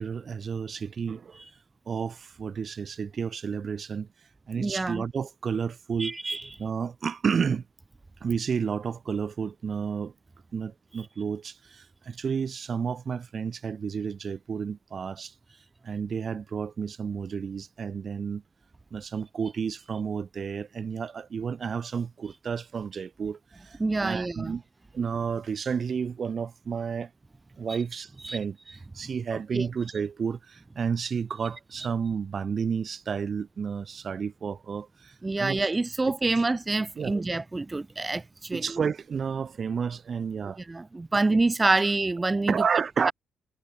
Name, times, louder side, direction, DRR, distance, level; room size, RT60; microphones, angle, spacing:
voice 1, 0.0-1.4 1.9-4.1 4.5-6.2 6.6-7.6 8.2-10.1 10.5-15.3 15.8-18.4 18.9-24.6 24.9-27.1 27.6-35.7 37.0-37.1 38.5-40.6 42.5-43.1, right 6 dB, 45° right, 7.1 m, -31 dB
voice 2, 4.6-5.0 6.0-6.5 23.8-24.5 27.7-27.8 28.2-28.4 29.3-29.7 35.2-38.8 40.7-42.5 43.0-43.1, right 2 dB, 20° right, 6.4 m, -27 dB
cardioid pair, 90°, 0 cm